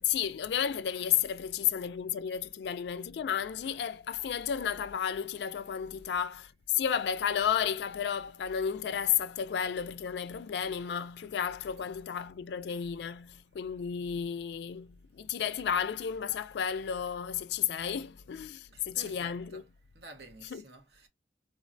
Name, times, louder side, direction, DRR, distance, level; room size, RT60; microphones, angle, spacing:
voice 1, 0.0-19.6 20.5-20.6, left 8 dB, 75° left, 0.3 m, -32 dB
voice 2, 18.7-19.6 19.9-21.1, right 3 dB, 75° right, 0.9 m, -51 dB
3.8 x 2.1 x 2.5 m
head